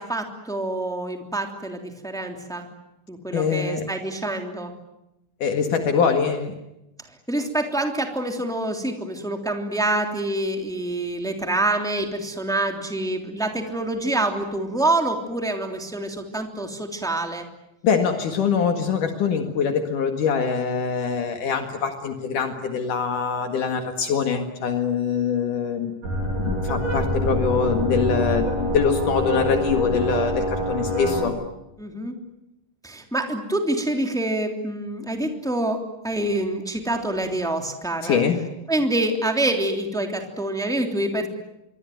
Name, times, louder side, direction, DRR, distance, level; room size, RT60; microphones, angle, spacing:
voice 1, 0.0-2.7 3.1-4.7 7.3-17.5 31.8-32.2 32.8-38.2 38.7-41.3, right 1 dB, ahead, 4 dB, 2.7 m, -26 dB
voice 2, 3.3-3.9 5.4-6.5 17.8-25.9 26.4-31.4 38.0-38.4, left 6 dB, 70° left, 6 dB, 3.4 m, -23 dB
sound 1, 26.0-31.3, equal, 70° right, 8.5 m, -25 dB
27.0 x 23.5 x 9.4 m, 0.89 s
omnidirectional pair, 3.8 m